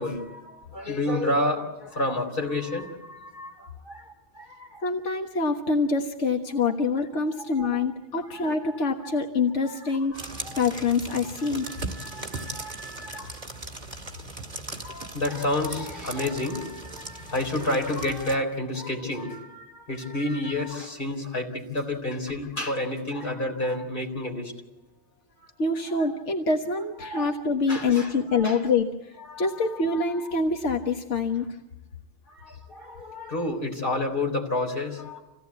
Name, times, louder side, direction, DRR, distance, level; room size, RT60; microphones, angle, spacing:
voice 1, 0.0-4.8 7.4-7.7 8.2-9.2 9.6-10.6 11.4-13.4 14.8-24.5 25.4-25.5 25.9-26.0 27.0-27.4 27.7-28.7 29.2-30.3 32.3-35.2, left 1 dB, 50° left, 1 dB, 4.3 m, -31 dB
voice 2, 4.8-10.2 10.6-11.7 25.6-31.6, left 4 dB, 85° left, 2 dB, 1.7 m, -26 dB
sound 1, 10.1-18.4, right 3 dB, 40° right, 2.1 m, -38 dB
27.0 x 17.0 x 8.4 m, 1.1 s
omnidirectional pair, 1.2 m